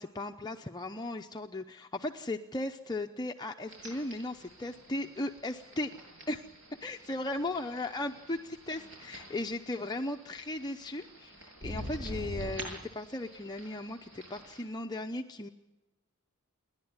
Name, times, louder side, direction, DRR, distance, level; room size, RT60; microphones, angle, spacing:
voice 1, 0.0-5.9 6.3-6.4 6.8-15.5, left 2 dB, 20° left, 4 dB, 0.7 m, -37 dB
sound 1, 3.7-14.6, equal, 60° right, 7.7 m, -46 dB
28.5 x 11.0 x 9.6 m, 1.1 s
head